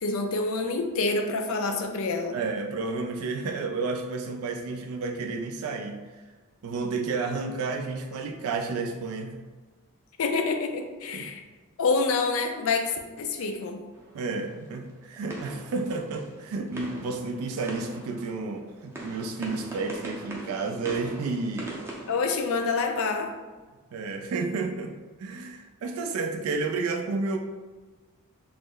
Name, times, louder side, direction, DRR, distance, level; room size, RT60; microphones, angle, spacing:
voice 1, 0.0-2.4 10.2-11.4 11.8-13.8 22.1-23.3, left 4 dB, 65° left, 5 dB, 0.4 m, -27 dB
voice 2, 2.3-6.0 6.6-9.4 11.1-11.3 14.1-21.8 23.9-24.9 25.2-27.4, right 3 dB, 75° right, 3 dB, 0.3 m, -31 dB
sound 1, 13.9-23.0, right 1 dB, 10° right, 0.5 m, -42 dB
3.0 x 2.0 x 3.7 m, 1.3 s
head